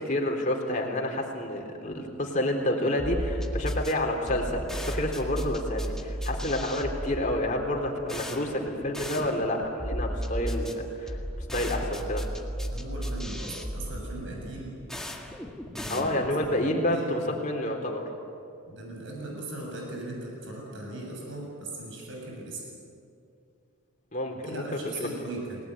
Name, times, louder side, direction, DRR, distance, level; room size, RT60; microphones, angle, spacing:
voice 1, 0.0-12.3 15.9-18.1 24.1-25.1, left 1 dB, 35° left, 1 dB, 3.9 m, -29 dB
sound 1, 3.0-16.6, equal, ahead, 1.8 m, -35 dB
voice 2, 12.7-14.8 15.7-16.2 16.5-17.4 18.6-22.6 24.4-25.6, right 2 dB, 55° right, -1 dB, 7.7 m, -39 dB
29.5 x 19.0 x 9.4 m, 2.6 s
head